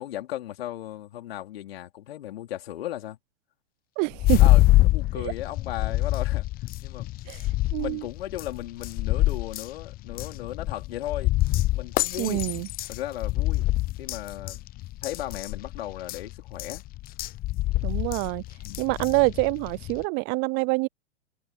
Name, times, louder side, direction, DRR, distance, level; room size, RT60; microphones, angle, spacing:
voice 1, 0.0-3.2 4.4-6.5 6.8-7.1 7.8-12.4 12.9-13.7 14.0-14.6 15.0-16.8 18.6-18.9, left 13 dB, 60° left, 4.3 m, -36 dB
voice 2, 4.0-4.4 7.3-7.4 7.7-8.0 12.2-12.7 17.8-18.4 18.8-20.9, right 33 dB, 35° right, 0.6 m, -26 dB
sound 1, 4.1-20.0, left 17 dB, 25° left, 0.9 m, -26 dB
hypercardioid pair, 105°, 33 cm